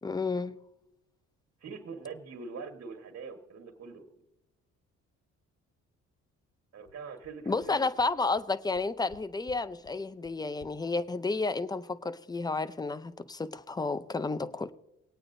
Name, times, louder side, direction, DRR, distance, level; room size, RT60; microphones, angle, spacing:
voice 1, 0.0-0.6 7.5-14.7, left 3 dB, 15° left, 0.5 m, -31 dB
voice 2, 1.6-4.1 6.7-7.8, right 5 dB, 50° right, 1.6 m, -43 dB
sound 1, 6.5-6.6 6.9-7.0 7.2-7.3 7.6-7.7 8.0-8.1 8.4-8.5 8.7-9.2 9.5-9.6 9.8-9.9 10.2-10.3 10.6-10.7, left 5 dB, 35° left, 0.9 m, -55 dB
20.5 x 8.9 x 2.6 m
cardioid pair, 90°, 30 cm